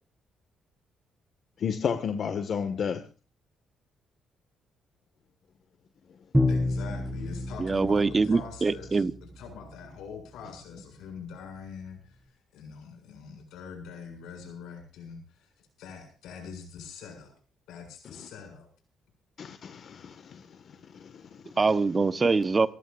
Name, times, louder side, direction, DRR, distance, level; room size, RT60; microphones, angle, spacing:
voice 1, 1.6-3.0 18.1-18.2 19.4-21.5, left 7 dB, 55° left, 1.8 m, -33 dB
Bowed string instrument, 6.3-9.2, left 1 dB, 5° right, 5.1 m, -29 dB
voice 2, 6.5-17.3 17.7-18.7, left 6 dB, 85° left, 7.4 m, -44 dB
voice 3, 7.6-9.1 21.6-22.7, right 4 dB, 30° right, 1.1 m, -24 dB
27.5 x 15.0 x 2.6 m
cardioid pair, 90°, 0 cm